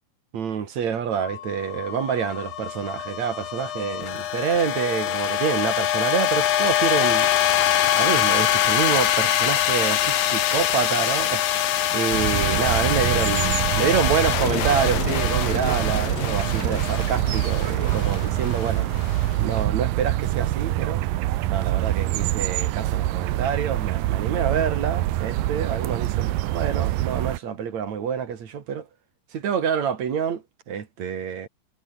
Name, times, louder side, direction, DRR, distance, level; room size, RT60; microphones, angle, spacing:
voice 1, 0.3-7.3 7.9-18.9 19.4-21.0 21.5-28.9 29.3-31.5, right 7 dB, 55° right, 3.2 m, -27 dB
sound 1, 1.2-19.5, left 12 dB, 75° left, 3.3 m, -24 dB
sound 2, 12.1-27.4, right 15 dB, 75° right, 2.6 m, -25 dB
omnidirectional pair, 4.2 m